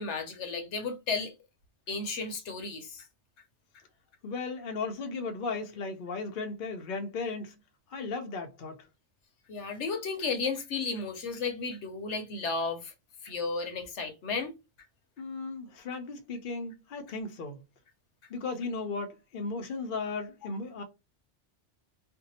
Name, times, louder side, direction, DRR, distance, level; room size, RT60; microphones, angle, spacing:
voice 1, 0.0-1.3 1.9-3.1 9.5-12.9 13.2-14.5, left 4 dB, 70° left, 1.0 m, -33 dB
voice 2, 4.2-7.6 7.9-8.9 15.2-17.6 18.3-20.8, left 4 dB, 55° left, 0.7 m, -36 dB
2.6 x 2.2 x 4.0 m
omnidirectional pair, 1.2 m